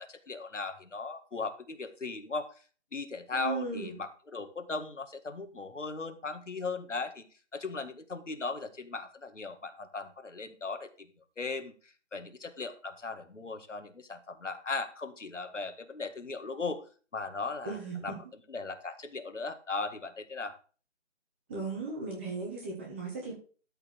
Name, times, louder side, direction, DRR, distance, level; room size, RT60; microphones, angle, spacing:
voice 1, 0.0-2.5 2.9-7.2 7.5-10.9 11.4-16.8 17.1-17.8 18.0-18.1 18.5-20.5, left 3 dB, 75° left, 8 dB, 2.0 m, -38 dB
voice 2, 3.3-4.0 17.6-18.2 21.5-23.3, right 4 dB, 10° right, -1 dB, 1.1 m, -36 dB
13.0 x 4.6 x 6.4 m, 0.38 s
figure-of-eight pair, 160°, 37 cm